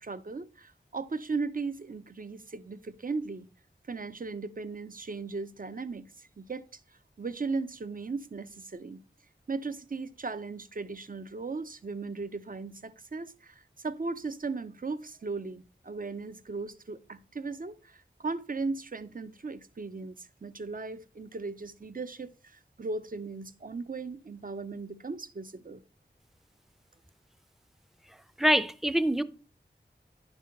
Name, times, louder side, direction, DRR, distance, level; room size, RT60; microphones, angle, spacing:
voice 1, 0.0-3.5 3.9-6.8 7.2-9.0 9.5-25.8, right 4 dB, 50° right, 0.6 m, -37 dB
voice 2, 28.4-29.2, equal, ahead, 0.5 m, -24 dB
10.0 x 3.4 x 5.6 m
wide cardioid pair, 55°, 19 cm